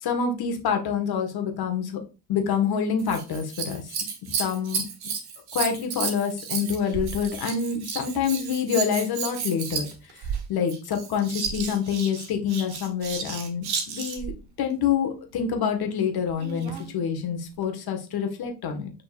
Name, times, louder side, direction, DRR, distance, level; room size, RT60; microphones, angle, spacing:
voice 1, 0.0-2.0 2.3-4.0 4.2-4.8 5.5-9.9 10.1-10.2 10.5-14.3 14.6-18.9, left 7 dB, 55° left, 4 dB, 1.7 m, -27 dB
Scissors, 3.0-14.4 16.3-16.9 17.6-17.7, right 6 dB, 55° right, 1.6 m, -33 dB
7.7 x 5.7 x 2.5 m, 0.31 s
figure-of-eight pair, 40°, 44 cm